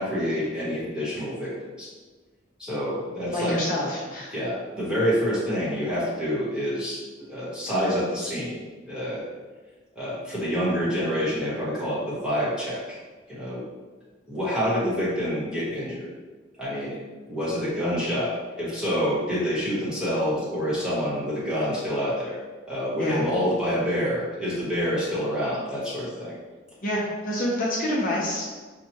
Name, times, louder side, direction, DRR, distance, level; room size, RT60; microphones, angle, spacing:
voice 1, 0.0-1.5 1.8-1.9 2.6-3.6 4.3-7.0 7.3-8.5 8.8-9.2 9.9-13.0 13.3-13.6 14.3-16.1 16.6-17.0 17.3-22.4 22.7-26.4, equal, 5° right, -9 dB, 1.2 m, -27 dB
voice 2, 3.3-4.3 23.0-23.2 26.8-28.5, left 1 dB, 40° left, -6 dB, 0.8 m, -27 dB
5.6 x 2.3 x 2.9 m, 1.3 s
head